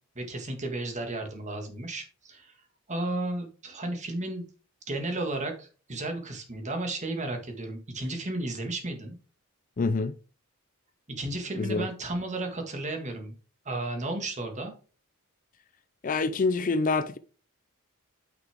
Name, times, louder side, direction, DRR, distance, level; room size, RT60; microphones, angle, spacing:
voice 1, 0.2-2.5 2.9-4.4 4.9-9.2 11.2-13.3 13.7-14.7, right 2 dB, 35° right, 1.7 m, -33 dB
voice 2, 9.8-10.1 11.5-11.9 16.0-17.2, left 3 dB, 35° left, 0.4 m, -26 dB
9.2 x 5.9 x 3.5 m
head